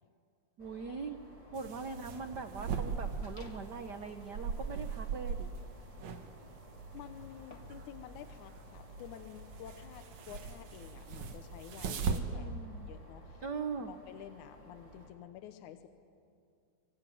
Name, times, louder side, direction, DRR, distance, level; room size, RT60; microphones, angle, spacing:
sound 1, 0.6-15.1, equal, 10° left, 4.2 m, -56 dB
voice 1, 0.6-1.2 1.5-5.5 12.3-12.9 13.4-13.9, right 5 dB, 90° right, 7 dB, 0.9 m, -41 dB
sound 2, 1.6-12.2, right 6 dB, 65° right, 2.6 m, -40 dB
sound 3, 3.2-3.8 4.3-7.9, left 3 dB, 30° left, 1.5 m, -60 dB
voice 2, 6.9-12.5 12.9-13.4 13.8-15.9, left 10 dB, 80° left, 9 dB, 2.4 m, -50 dB
25.5 x 24.0 x 9.4 m, 2.4 s
omnidirectional pair, 3.4 m